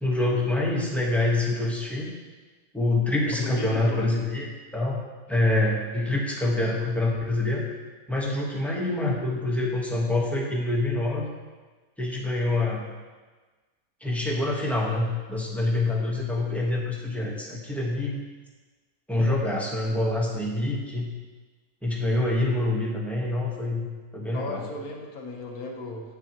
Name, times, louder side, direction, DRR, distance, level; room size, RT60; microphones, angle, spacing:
voice 1, 0.0-2.1 2.7-4.5 4.7-5.0 5.3-7.7 8.1-11.3 12.0-12.9 14.0-18.2 19.1-21.1 21.8-23.8 24.1-24.7, left 2 dB, ahead, -4 dB, 1.1 m, -26 dB
voice 2, 3.3-4.1 24.3-26.0, left 2 dB, 85° left, 1 dB, 1.7 m, -35 dB
9.3 x 8.1 x 3.0 m, 1.3 s
omnidirectional pair, 1.5 m